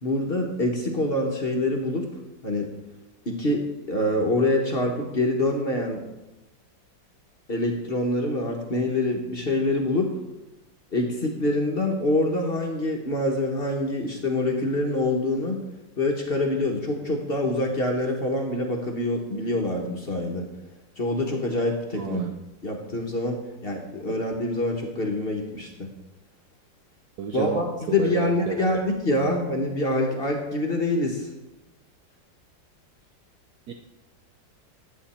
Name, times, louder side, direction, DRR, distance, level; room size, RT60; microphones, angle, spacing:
voice 1, 0.0-2.1 2.4-2.7 3.2-3.6 3.9-6.0 7.5-10.1 10.9-15.6 16.0-20.5 21.0-22.2 22.6-25.9 27.3-31.3, left 1 dB, 40° left, 1 dB, 1.1 m, -25 dB
voice 2, 21.9-22.3 27.2-27.6 28.0-28.8 29.2-29.3 33.7-33.8, right 8 dB, 70° right, 5 dB, 1.0 m, -31 dB
11.0 x 8.3 x 4.3 m, 1.0 s
omnidirectional pair, 2.0 m